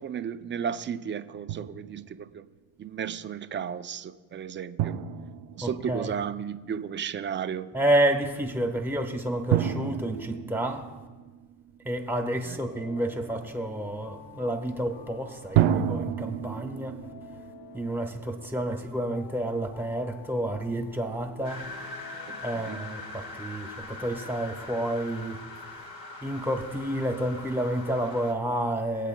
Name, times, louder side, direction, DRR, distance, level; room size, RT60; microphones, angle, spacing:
voice 1, 0.0-2.4 2.8-5.0 5.6-7.7 12.4-12.6 22.3-22.9, right 8 dB, 25° right, 0.4 m, -34 dB
Drum, 1.5-2.2 4.8-6.6 9.5-12.0 15.5-18.7, right 10 dB, 75° right, 0.7 m, -31 dB
voice 2, 5.6-6.1 7.7-10.9 11.8-17.0 17.7-21.6 22.4-25.4 26.2-29.1, right 1 dB, 5° right, 1.2 m, -29 dB
sound 1, 12.6-23.5, left 3 dB, 75° left, 2.3 m, -50 dB
sound 2, 21.4-28.3, left 3 dB, 40° left, 1.7 m, -42 dB
22.0 x 8.3 x 2.2 m
cardioid pair, 110°, 47 cm